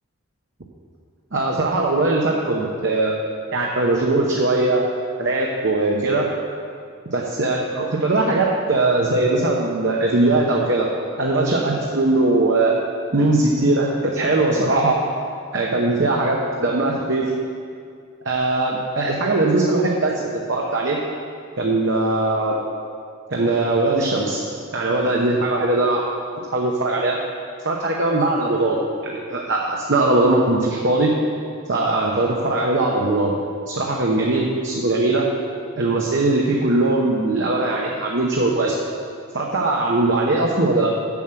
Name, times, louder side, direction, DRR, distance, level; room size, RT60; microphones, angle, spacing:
voice 1, 1.3-3.1 3.5-4.9 5.2-6.2 7.1-10.9 11.2-12.8 13.1-15.0 15.5-17.3 18.2-21.0 21.6-22.6 23.3-24.4 24.7-26.0 26.5-27.2 27.6-31.1 31.7-33.4 33.7-35.3 35.8-38.7 39.3-40.9, right 2 dB, 55° right, -2 dB, 0.8 m, -20 dB
7.1 x 6.1 x 7.7 m, 2.2 s
head